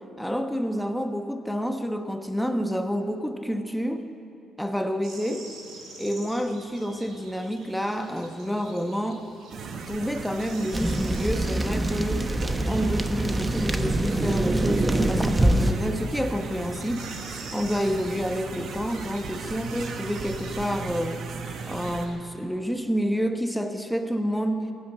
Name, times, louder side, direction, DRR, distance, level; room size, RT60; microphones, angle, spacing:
voice 1, 0.2-4.0 4.6-5.5 6.0-9.2 9.9-12.3 12.7-17.0 17.5-21.2 21.7-24.7, equal, ahead, 6 dB, 1.2 m, -29 dB
sound 1, 5.0-22.1, right 3 dB, 80° right, 3.9 m, -48 dB
sound 2, 9.5-22.1, right 5 dB, 65° right, 1.2 m, -37 dB
sound 3, 10.7-15.7, right 1 dB, 15° right, 1.0 m, -24 dB
15.5 x 9.2 x 9.0 m, 2.6 s
supercardioid pair, 65°, 0 cm